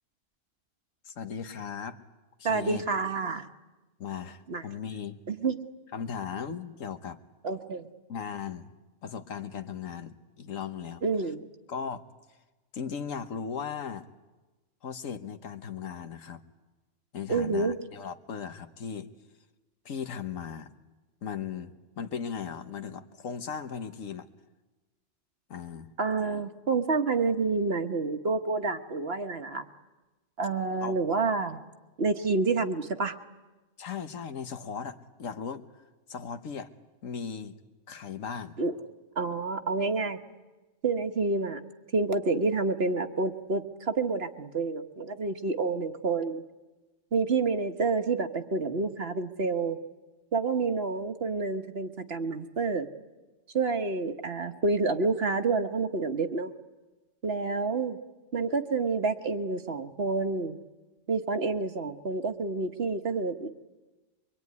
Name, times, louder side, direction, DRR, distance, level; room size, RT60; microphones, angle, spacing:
voice 1, 1.0-2.0 2.4-2.8 4.0-5.2 5.9-7.2 8.1-8.7 9.0-11.0 11.7-12.0 12.7-14.1 14.8-16.4 17.1-19.1 19.8-20.7 21.2-24.3 25.5-25.9 30.8-31.0 33.8-35.8 36.1-36.7 37.0-37.6 37.9-38.6, left 7 dB, 80° left, 9 dB, 1.5 m, -37 dB
voice 2, 2.4-3.5 4.5-4.6 5.3-5.6 7.4-7.9 11.0-11.4 17.3-17.8 26.0-29.7 30.4-31.6 32.0-33.1 38.6-38.7 39.2-40.2 40.8-41.6 41.9-46.4 47.1-49.8 50.3-52.9 53.5-56.5 57.2-58.0 58.3-60.6 61.1-63.5, right 3 dB, 50° right, 8 dB, 1.4 m, -28 dB
24.5 x 23.5 x 9.6 m, 1.2 s
omnidirectional pair, 1.4 m